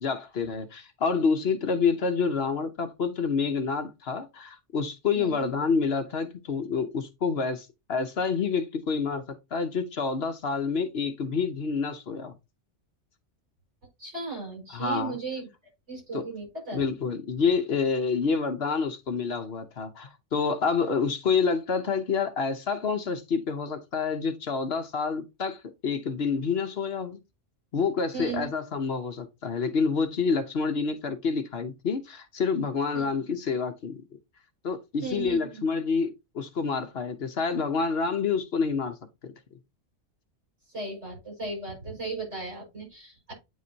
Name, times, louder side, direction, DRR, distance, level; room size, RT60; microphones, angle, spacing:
voice 1, 0.0-9.2 9.5-12.3 14.7-15.1 16.1-16.2 16.7-27.2 27.7-34.0 34.6-38.9 39.2-39.3, left 5 dB, 60° left, 1.0 m, -28 dB
voice 2, 14.0-15.5 15.9-16.8 28.1-28.5 32.9-33.1 35.0-35.7 40.7-43.3, right 3 dB, 70° right, 5.7 m, -36 dB
9.1 x 4.8 x 2.7 m
omnidirectional pair, 1.3 m